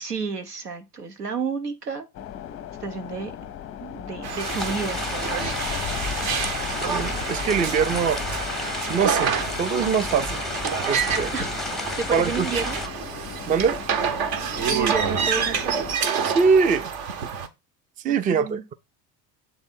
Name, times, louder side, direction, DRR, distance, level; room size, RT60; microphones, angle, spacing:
voice 1, 0.0-2.1 2.8-3.3 3.8-5.6 11.3-11.6 12.0-12.8 14.7-15.9 18.1-18.6, right 5 dB, 85° right, 1.1 m, -31 dB
sound 1, 2.1-16.0, left 10 dB, 30° left, 0.6 m, -36 dB
sound 2, 4.2-17.5, right 7 dB, 50° right, 1.0 m, -28 dB
sound 3, 4.4-12.9, left 2 dB, ahead, 0.8 m, -32 dB
voice 2, 6.7-8.2 8.9-10.4 10.8-11.3 12.1-12.5 13.5-13.8 16.3-16.9 18.0-18.7, right 6 dB, 20° right, 0.4 m, -23 dB
7.7 x 3.5 x 4.2 m
figure-of-eight pair, 65°, 46 cm